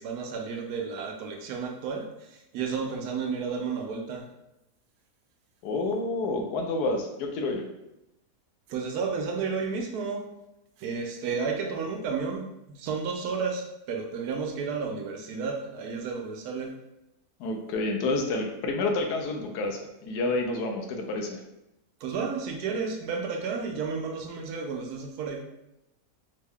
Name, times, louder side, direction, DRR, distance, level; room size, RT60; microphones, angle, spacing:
voice 1, 0.0-4.3 8.7-10.3 10.8-16.7 22.0-25.4, right 5 dB, 75° right, 2 dB, 1.1 m, -32 dB
voice 2, 5.6-7.6 17.4-21.4, left 2 dB, 80° left, 2 dB, 1.2 m, -29 dB
3.6 x 2.2 x 3.4 m, 0.89 s
omnidirectional pair, 1.7 m